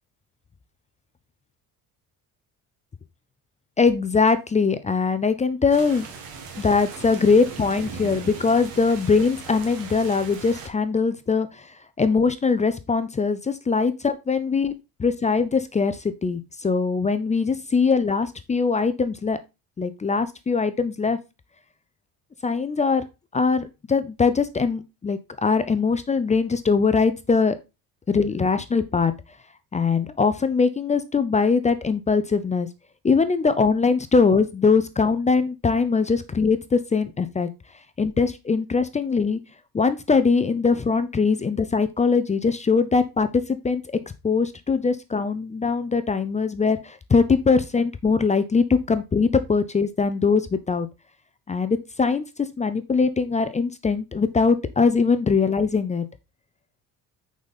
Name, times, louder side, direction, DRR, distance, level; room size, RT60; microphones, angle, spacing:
voice 1, 3.8-6.1 6.6-14.7 15.0-19.4 19.8-21.2 22.4-23.0 23.3-27.6 28.1-29.1 29.7-32.7 33.0-37.5 38.0-39.4 39.7-43.8 44.2-50.9 51.5-52.2 52.6-56.0, left 4 dB, 20° left, 12 dB, 0.6 m, -22 dB
sound 1, 5.7-10.7, right 5 dB, 70° right, 2.2 m, -39 dB
6.2 x 5.4 x 4.0 m, 0.26 s
cardioid pair, 120°, 37 cm